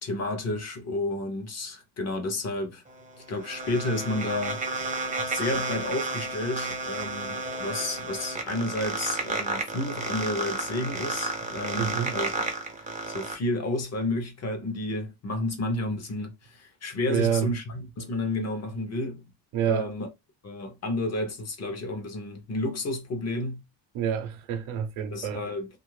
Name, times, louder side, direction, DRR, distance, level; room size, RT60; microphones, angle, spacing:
voice 1, 0.0-2.8 3.3-12.5 13.1-19.3 19.7-20.1 20.4-23.6 25.1-25.7, left 2 dB, 35° left, 0.6 m, -31 dB
sound 1, 2.9-13.3, right 3 dB, 20° right, 0.4 m, -32 dB
voice 2, 11.8-12.2 17.1-17.5 19.5-19.9 23.9-25.4, right 8 dB, 85° right, 0.7 m, -28 dB
2.7 x 2.4 x 3.1 m
cardioid pair, 175°, 47 cm